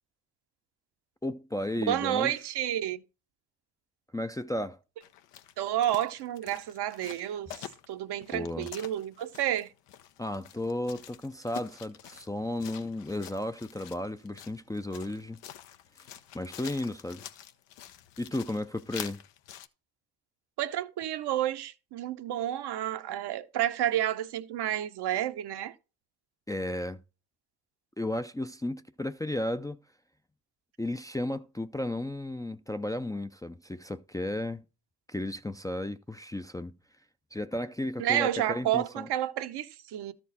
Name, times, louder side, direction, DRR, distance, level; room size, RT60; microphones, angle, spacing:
voice 1, 1.2-2.4 4.1-4.8 8.3-8.7 10.2-15.4 16.3-17.2 18.2-19.2 26.5-27.0 28.0-29.8 30.8-34.6 35.1-36.7 37.3-39.1, left 1 dB, 10° left, 0.5 m, -34 dB
voice 2, 1.8-3.0 5.6-9.7 20.6-25.7 38.0-40.1, right 12 dB, 65° right, 0.9 m, -30 dB
sound 1, 5.0-19.7, left 11 dB, 75° left, 0.9 m, -47 dB
13.0 x 4.6 x 4.1 m
supercardioid pair, 65°, 44 cm